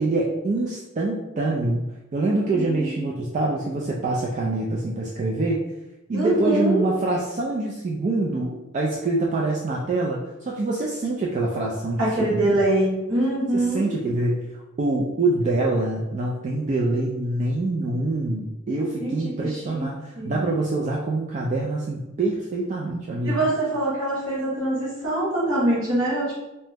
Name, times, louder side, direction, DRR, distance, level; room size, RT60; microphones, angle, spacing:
voice 1, 0.0-5.6 6.1-12.6 13.5-14.4 14.8-23.5, right 2 dB, 35° right, -3 dB, 0.3 m, -25 dB
voice 2, 2.5-3.1 6.1-6.8 12.0-13.9 19.0-19.8 20.1-20.6 23.2-26.3, right 1 dB, 70° right, -8 dB, 1.4 m, -24 dB
2.8 x 2.1 x 3.3 m, 1.0 s
head